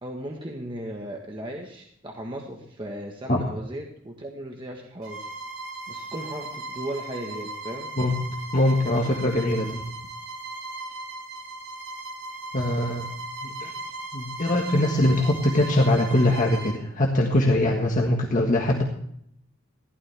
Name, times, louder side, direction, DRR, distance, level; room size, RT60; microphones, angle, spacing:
voice 1, 0.0-5.3 5.9-7.9, right 1 dB, 25° right, 0 dB, 1.5 m, -36 dB
Bowed string instrument, 5.0-16.8, right 2 dB, 85° right, 6.2 m, -37 dB
voice 2, 8.5-9.8 12.5-13.0 13.6-13.7 14.1-18.8, left 1 dB, 40° left, 0 dB, 1.6 m, -22 dB
15.5 x 12.5 x 3.5 m, 0.71 s
head